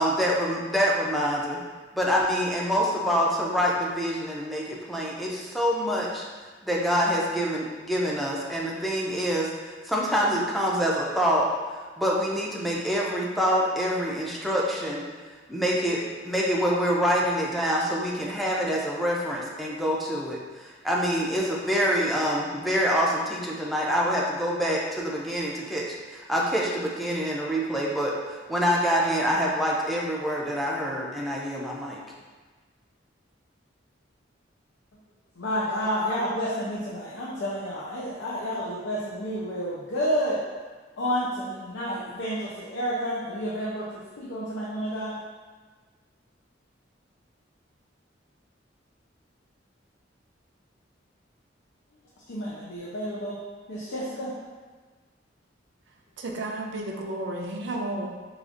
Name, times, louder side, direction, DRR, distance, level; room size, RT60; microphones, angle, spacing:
voice 1, 0.0-1.6 1.9-6.2 6.6-11.5 12.0-15.0 15.5-32.0, equal, ahead, -4 dB, 0.4 m, -26 dB
voice 2, 35.4-40.4 41.0-45.1 52.3-53.4 53.7-54.3, equal, 85° left, -7 dB, 0.6 m, -30 dB
voice 3, 56.2-58.1, right 2 dB, 70° right, 0 dB, 0.5 m, -32 dB
4.9 x 2.4 x 2.5 m, 1.4 s
head